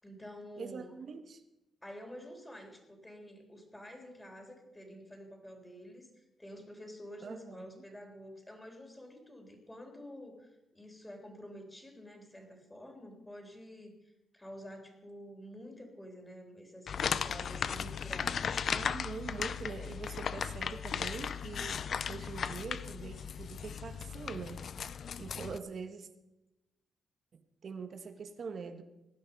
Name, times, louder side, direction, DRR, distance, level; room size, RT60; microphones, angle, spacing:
voice 1, 0.0-0.9 1.8-18.9, equal, 10° left, 3 dB, 3.7 m, -49 dB
voice 2, 0.6-1.4 7.2-7.8 18.7-24.7 25.2-26.1 27.3-28.8, right 5 dB, 55° right, 8 dB, 1.4 m, -44 dB
sound 1, 16.9-25.6, left 7 dB, 60° left, 0.6 m, -36 dB
17.0 x 11.0 x 5.4 m, 0.94 s
cardioid pair, 100°, 0 cm